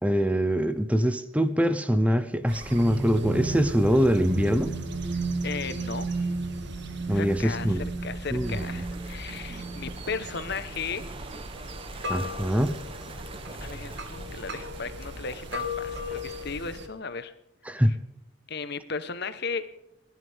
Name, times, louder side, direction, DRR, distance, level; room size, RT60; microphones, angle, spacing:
voice 1, 0.0-4.8 7.1-7.9 8.3-8.6 12.1-12.8 17.7-17.9, equal, 5° right, 11 dB, 0.8 m, -24 dB
sound 1, 2.5-16.9, left 1 dB, 60° right, 2.1 m, -39 dB
sound 2, 2.8-10.5, right 3 dB, 85° right, 2.9 m, -33 dB
voice 2, 5.1-6.3 7.1-11.2 11.9-12.1 13.6-17.3 17.9-18.0 18.5-19.6, left 5 dB, 55° left, 12 dB, 1.2 m, -36 dB
sound 3, 8.4-16.4, right 3 dB, 30° right, 1.2 m, -45 dB
29.5 x 11.0 x 3.6 m, 0.90 s
head